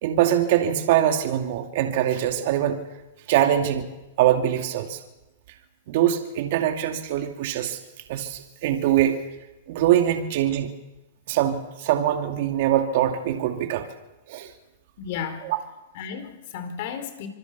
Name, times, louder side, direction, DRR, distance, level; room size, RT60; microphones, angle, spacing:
voice 1, 0.0-2.8 3.3-3.9 4.2-5.0 5.9-7.8 8.1-9.2 9.7-10.7 11.3-13.9 14.3-14.5 15.4-15.6, right 11 dB, 60° right, 4 dB, 2.5 m, -23 dB
voice 2, 15.0-15.5 15.9-17.3, left 7 dB, 60° left, 9 dB, 4.6 m, -33 dB
26.5 x 21.5 x 6.9 m, 1.0 s
hypercardioid pair, 130°, 0 cm